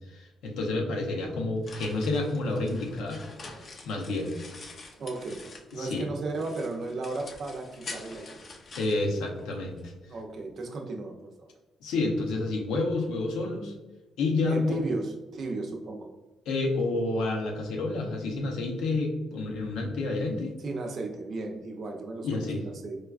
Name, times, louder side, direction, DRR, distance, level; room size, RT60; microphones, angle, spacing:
voice 1, 0.1-3.2 3.5-4.3 5.8-6.1 8.8-9.9 11.8-13.7 14.2-14.8 16.5-20.6 22.2-22.6, left 2 dB, 90° left, 1 dB, 0.6 m, -29 dB
sound 1, 1.3-6.0 6.3-9.8, left 3 dB, 50° left, 0.5 m, -46 dB
voice 2, 5.0-5.4 5.7-8.4 10.1-11.5 14.5-16.1 20.6-23.0, right 2 dB, 55° right, 2 dB, 0.6 m, -35 dB
4.4 x 2.3 x 2.3 m, 1.1 s
cardioid pair, 90°, 0 cm